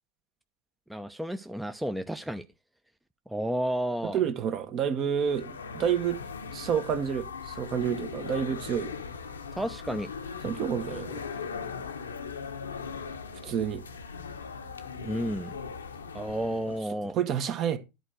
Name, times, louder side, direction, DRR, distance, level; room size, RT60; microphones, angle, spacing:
voice 1, 0.9-2.4 3.3-4.2 9.5-10.1 15.0-15.5 16.1-17.1, right 1 dB, 5° right, 0.7 m, -31 dB
voice 2, 4.1-6.2 6.5-8.9 10.4-11.2 13.4-13.8 17.1-17.8, right 8 dB, 45° right, 1.5 m, -29 dB
sound 1, 5.1-16.8, left 5 dB, 85° left, 1.1 m, -39 dB
11.0 x 4.5 x 6.4 m
hypercardioid pair, 80°, 0 cm